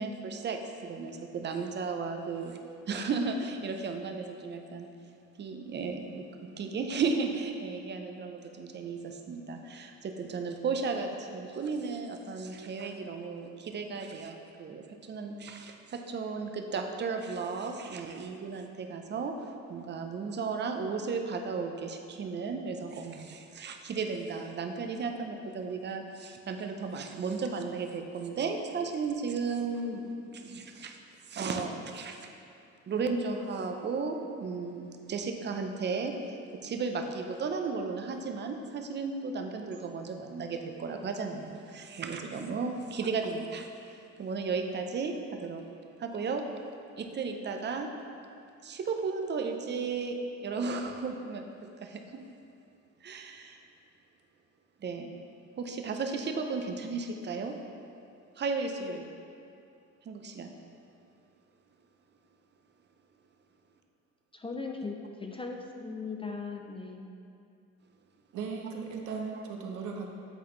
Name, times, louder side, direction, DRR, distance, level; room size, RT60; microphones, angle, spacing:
voice 1, 0.0-2.6 2.9-4.9 5.4-19.4 19.7-31.0 31.3-32.3 32.9-43.7 44.2-45.6 46.0-46.5 47.0-47.9 48.6-51.4 51.8-52.2 53.0-53.6 54.8-55.1 55.6-57.6 58.4-59.1 60.1-60.5, right 4 dB, 35° right, 4 dB, 0.6 m, -34 dB
voice 2, 64.3-67.1, left 4 dB, 20° left, 2 dB, 0.5 m, -38 dB
voice 3, 68.3-70.1, right 5 dB, 75° right, 1 dB, 0.8 m, -37 dB
8.0 x 4.0 x 3.2 m, 2.5 s
cardioid pair, 85°, 30 cm